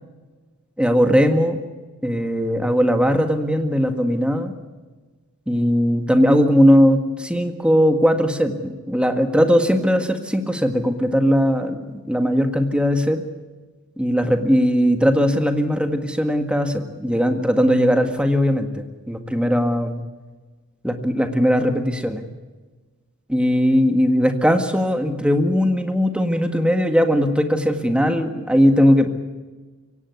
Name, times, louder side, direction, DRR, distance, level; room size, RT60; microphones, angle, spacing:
voice 1, 0.8-1.6 2.0-4.5 5.5-13.2 14.0-20.0 20.8-22.3 23.3-29.1, equal, 5° right, 6 dB, 1.8 m, -19 dB
23.0 x 17.5 x 8.3 m, 1.3 s
head